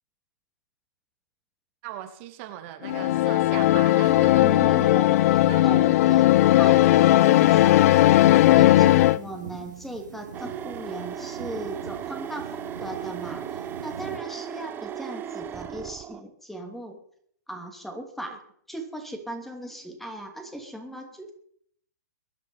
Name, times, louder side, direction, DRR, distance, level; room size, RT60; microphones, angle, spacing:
voice 1, 1.8-4.5 5.5-5.6 18.3-18.4, right 12 dB, 40° right, 6 dB, 1.9 m, -39 dB
sound 1, 2.8-9.2, left 15 dB, 50° left, 0.6 m, -17 dB
voice 2, 4.3-6.3 6.6-13.4 13.8-17.0 17.5-18.4 18.7-21.3, right 1 dB, ahead, 5 dB, 2.7 m, -37 dB
sound 2, 7.2-14.2, right 7 dB, 75° right, 3.0 m, -42 dB
sound 3, 10.3-16.2, right 9 dB, 20° right, 0.8 m, -36 dB
22.0 x 9.7 x 5.4 m, 0.66 s
hypercardioid pair, 125°, 10 cm